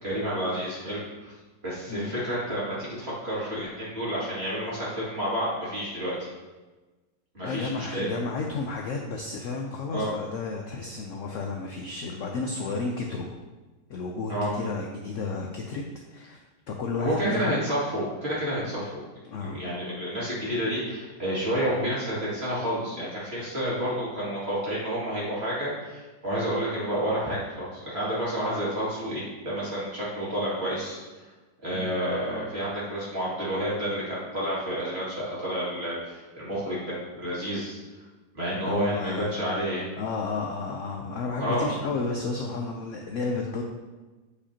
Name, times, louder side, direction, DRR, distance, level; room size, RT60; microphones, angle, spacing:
voice 1, 0.0-1.3 1.6-6.3 7.3-8.1 9.9-10.1 14.3-14.5 17.0-19.0 19.4-31.0 31.6-36.9 37.2-37.8 38.3-39.8 41.4-41.7, equal, 35° right, -8 dB, 2.4 m, -30 dB
voice 2, 7.4-13.4 13.9-15.8 16.1-16.4 16.7-17.7 19.3-19.6 31.7-32.1 38.6-39.3 40.0-43.6, left 4 dB, 75° left, 1 dB, 0.7 m, -32 dB
8.5 x 4.9 x 2.8 m, 1.2 s
omnidirectional pair, 2.0 m